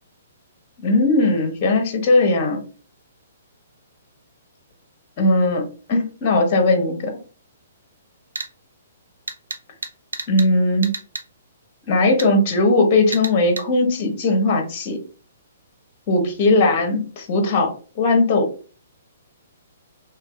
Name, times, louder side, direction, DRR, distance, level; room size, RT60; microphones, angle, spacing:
voice 1, 0.8-2.6 5.2-7.1 10.3-10.9 11.9-15.0 16.1-18.5, left 2 dB, 35° left, 5 dB, 1.1 m, -18 dB
sound 1, 8.3-8.5 9.3-10.5 10.8-11.3 12.2-12.3 13.1-13.7, right 3 dB, 75° right, 0.7 m, -31 dB
3.4 x 3.1 x 2.4 m, 0.37 s
figure-of-eight pair, 120°, 0 cm